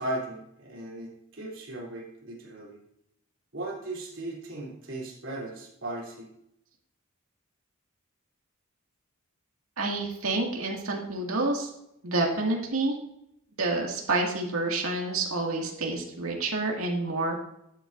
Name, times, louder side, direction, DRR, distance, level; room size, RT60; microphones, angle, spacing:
voice 1, 0.0-2.8 3.5-6.3, right 1 dB, 60° right, -4 dB, 3.5 m, -37 dB
voice 2, 9.8-11.7 12.0-13.0 13.6-17.4, right 2 dB, 75° right, 0 dB, 2.2 m, -28 dB
11.5 x 8.8 x 2.7 m, 0.78 s
head